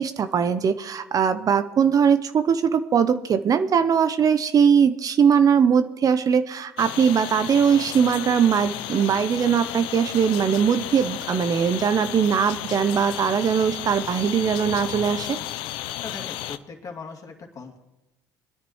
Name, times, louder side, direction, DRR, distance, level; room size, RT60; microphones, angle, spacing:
voice 1, 0.0-15.4, right 7 dB, 40° right, 11 dB, 0.7 m, -21 dB
sound 1, 6.8-16.6, left 14 dB, 75° left, 0.6 m, -33 dB
voice 2, 16.0-17.8, left 4 dB, 40° left, 1 dB, 2.6 m, -39 dB
23.0 x 10.5 x 3.2 m, 1.0 s
supercardioid pair, 80°, 9 cm